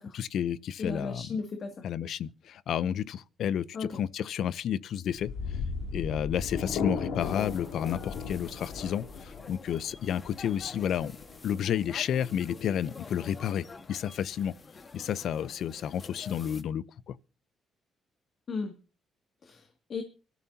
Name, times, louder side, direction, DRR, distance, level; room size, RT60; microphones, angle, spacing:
voice 1, 0.1-1.4 1.8-5.3 5.9-11.2 11.4-14.5 14.9-17.1, left 9 dB, 70° left, 0.6 m, -31 dB
voice 2, 0.8-1.8 3.7-4.0 18.5-18.7 19.4-20.0, left 4 dB, 50° left, 2.3 m, -35 dB
sound 1, 5.1-12.0, left 5 dB, 85° left, 2.8 m, -36 dB
sound 2, 7.2-16.6, left 3 dB, 35° left, 1.5 m, -48 dB
24.5 x 13.5 x 2.8 m
cardioid pair, 90°, 0 cm